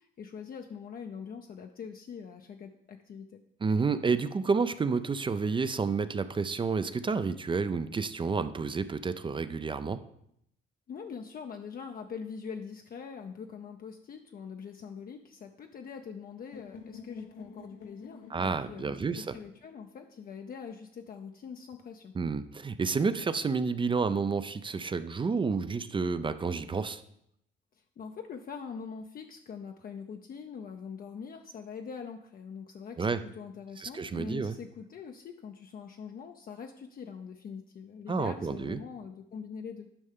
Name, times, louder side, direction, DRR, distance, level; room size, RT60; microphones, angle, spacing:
voice 1, 0.0-3.4 10.9-22.1 27.7-39.9, left 6 dB, 45° left, 4 dB, 0.5 m, -43 dB
voice 2, 3.6-10.0 18.3-19.4 22.1-27.0 33.0-33.2 33.8-34.6 38.1-38.8, right 4 dB, 25° right, 12 dB, 0.4 m, -30 dB
sound 1, 16.5-20.5, left 5 dB, 80° left, 0.8 m, -50 dB
9.9 x 5.4 x 3.6 m, 0.74 s
cardioid pair, 90°, 20 cm